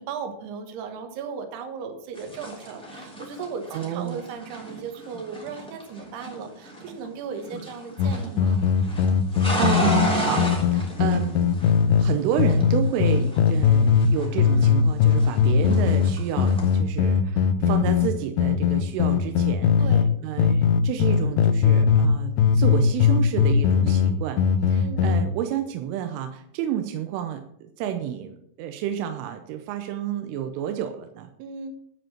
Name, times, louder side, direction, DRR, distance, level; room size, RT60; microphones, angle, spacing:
voice 1, 0.0-8.6 15.6-15.9 19.8-20.1 24.8-25.1 31.4-31.7, right 5 dB, 65° right, 6 dB, 3.0 m, -36 dB
sound 1, 2.1-7.1 7.3-8.3 8.6-12.1 12.4-14.8 15.1-16.7, right 1 dB, ahead, 1.8 m, -32 dB
voice 2, 3.7-4.2 9.6-11.5 12.0-19.9 20.2-31.3, right 10 dB, 90° right, 6 dB, 3.3 m, -30 dB
sound 2, 8.0-12.1 12.4-14.1 14.4-20.1 20.4-22.1 22.4-25.2, left 7 dB, 80° left, 2.7 m, -19 dB
12.5 x 5.2 x 7.3 m, 0.71 s
omnidirectional pair, 5.7 m